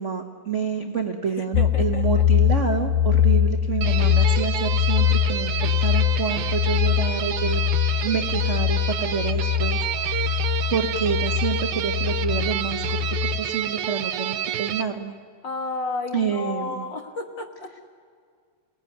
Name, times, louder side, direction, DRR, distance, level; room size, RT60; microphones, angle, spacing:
voice 1, 0.0-7.6 8.0-13.0 13.4-15.2 16.1-16.8, right 6 dB, 45° right, 3 dB, 0.9 m, -28 dB
voice 2, 1.3-2.2 15.4-17.8, left 3 dB, 45° left, 3 dB, 1.9 m, -32 dB
sound 1, 1.5-13.4, left 9 dB, 90° left, 2.3 m, -23 dB
sound 2, 3.8-14.8, right 9 dB, 90° right, 2.3 m, -29 dB
29.5 x 18.5 x 9.4 m, 2.1 s
omnidirectional pair, 3.3 m